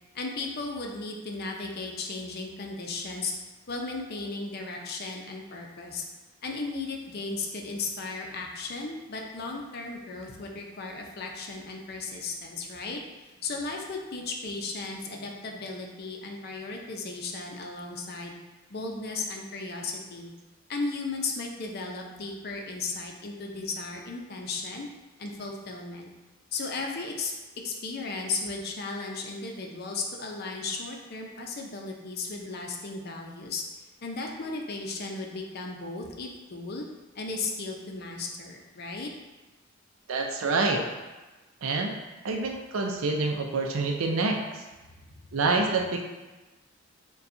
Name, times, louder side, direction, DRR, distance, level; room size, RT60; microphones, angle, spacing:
voice 1, 0.1-3.3 3.7-6.0 6.4-18.3 18.7-20.3 20.7-24.9 25.2-26.1 26.5-27.3 27.6-33.6 34.0-36.9 37.1-39.1 45.0-45.1, left 3 dB, 50° left, 1 dB, 0.6 m, -35 dB
voice 2, 40.1-40.8 41.6-41.9 42.2-44.6 45.3-46.0, right 3 dB, 80° right, 2 dB, 0.5 m, -27 dB
6.8 x 2.3 x 2.6 m, 1.2 s
head